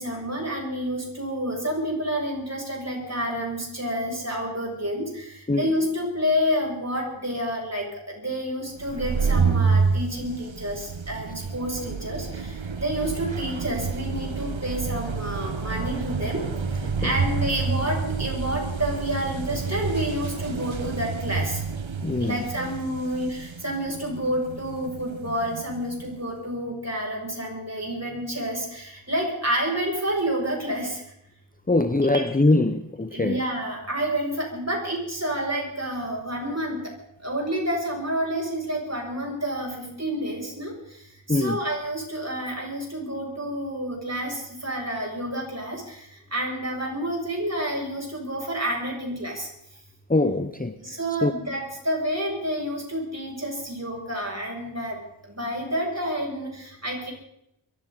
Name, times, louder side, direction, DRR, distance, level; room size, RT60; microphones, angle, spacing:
voice 1, 0.0-16.5 17.0-21.6 22.2-31.0 32.0-32.3 33.1-36.8 37.2-40.7 41.3-49.5 50.8-55.0 55.3-57.1, equal, 30° right, 7.5 m, -29 dB
sound 1, 8.8-26.2, right 5 dB, 70° right, 1.2 m, -29 dB
voice 2, 16.8-17.1 22.0-22.5 31.7-33.4 41.3-41.6 50.1-50.7 51.2-51.3, left 2 dB, 20° left, 0.9 m, -23 dB
23.0 x 15.0 x 4.1 m
wide cardioid pair, 55°, 48 cm